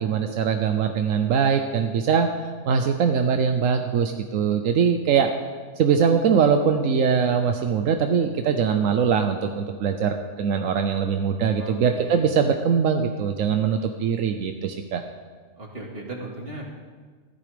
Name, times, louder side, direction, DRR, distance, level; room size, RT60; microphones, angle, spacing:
voice 1, 0.0-2.3 2.7-5.3 5.8-15.0, right 6 dB, 85° right, 6 dB, 1.2 m, -22 dB
voice 2, 11.6-12.2 15.6-16.6, right 2 dB, 50° right, -1 dB, 2.6 m, -37 dB
14.5 x 12.5 x 5.1 m, 1.5 s
omnidirectional pair, 1.3 m